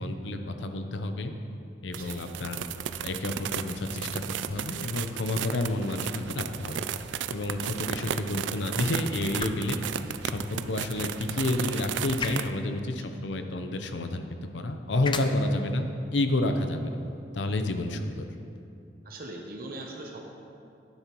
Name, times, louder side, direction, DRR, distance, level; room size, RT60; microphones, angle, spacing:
voice 1, 0.0-1.3 1.8-2.6 3.0-6.7 7.3-9.8 10.2-15.9 16.1-17.0 17.3-18.3, left 2 dB, 90° left, 7 dB, 0.7 m, -30 dB
sound 1, 1.9-12.5, right 8 dB, 90° right, 0.3 m, -34 dB
sound 2, 9.2-18.6, left 4 dB, 25° left, 0.4 m, -44 dB
voice 2, 19.0-20.2, right 2 dB, 55° right, 1 dB, 0.9 m, -40 dB
12.0 x 9.7 x 3.0 m, 2.7 s
head